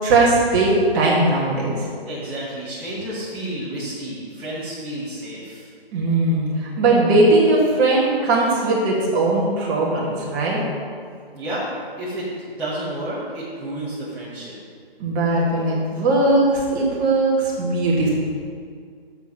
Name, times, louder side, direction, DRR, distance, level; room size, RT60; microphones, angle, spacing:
voice 1, 0.0-1.7 5.9-10.6 15.0-18.2, right 2 dB, 20° right, -4 dB, 1.8 m, -19 dB
voice 2, 2.1-5.7 11.3-11.6 12.0-12.3 12.6-14.5, right 1 dB, 5° right, -12 dB, 1.0 m, -30 dB
7.9 x 7.0 x 6.1 m, 2.1 s
figure-of-eight pair, 150°, 30 cm